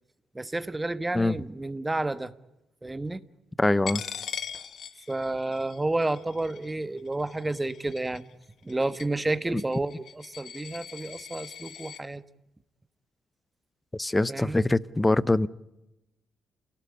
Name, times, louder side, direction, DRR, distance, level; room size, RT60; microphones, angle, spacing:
voice 1, 0.3-2.3 2.8-3.2 5.1-8.2 8.6-12.2 14.3-14.6, right 2 dB, 15° right, 13 dB, 1.4 m, -30 dB
voice 2, 3.6-4.0 9.5-9.6 13.9-15.5, left 2 dB, 15° left, 19 dB, 0.9 m, -23 dB
Coin (dropping), 3.9-12.0, left 8 dB, 65° left, 1.5 m, -41 dB
29.0 x 18.0 x 9.8 m, 0.94 s
cardioid pair, 90°, 0 cm